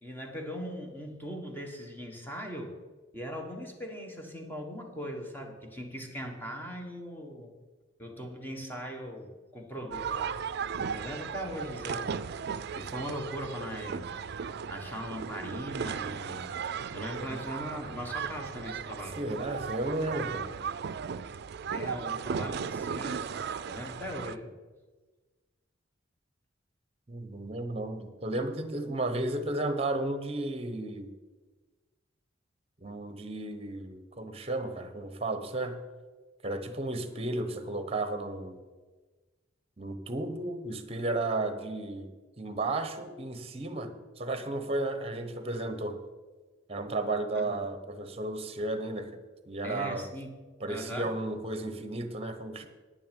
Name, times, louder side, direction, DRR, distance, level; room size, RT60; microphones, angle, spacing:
voice 1, 0.0-2.7 3.1-7.5 8.0-10.4 10.9-12.1 12.7-14.1 14.7-16.5 16.9-19.2 21.7-24.5 47.3-47.6 49.6-50.3 50.7-51.1, equal, 10° left, 2 dB, 1.6 m, -40 dB
sound 1, 9.9-24.4, right 6 dB, 60° right, 0.4 m, -36 dB
voice 2, 19.2-20.5 27.1-31.1 32.8-35.8 36.4-38.6 39.8-46.0 46.7-49.2 49.5-50.1 50.6-52.7, right 2 dB, 30° right, 10 dB, 1.0 m, -33 dB
10.5 x 9.9 x 5.3 m, 1.3 s
head